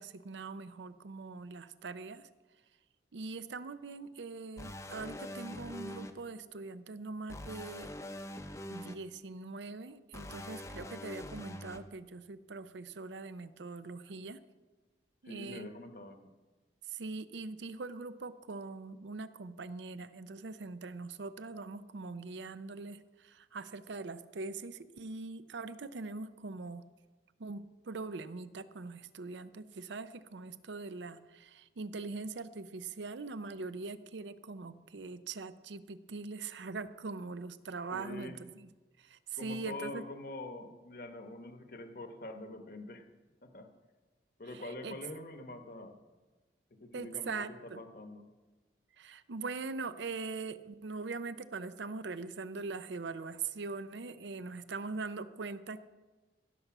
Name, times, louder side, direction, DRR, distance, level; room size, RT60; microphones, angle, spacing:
voice 1, 0.0-2.3 3.1-7.9 8.7-14.4 15.2-15.7 16.9-26.8 27.4-38.7 39.0-40.0 44.5-45.0 46.9-47.8 49.0-55.9, right 4 dB, 80° right, 13 dB, 0.6 m, -42 dB
sound 1, 4.6-6.1 7.3-8.9 10.1-11.8, left 1 dB, 15° left, 0.6 m, -44 dB
voice 2, 15.2-16.3 37.9-38.4 39.4-43.1 43.4-43.7 44.4-46.0 46.7-48.3, left 2 dB, 50° left, 7 dB, 1.0 m, -45 dB
16.0 x 6.7 x 6.0 m, 1.3 s
head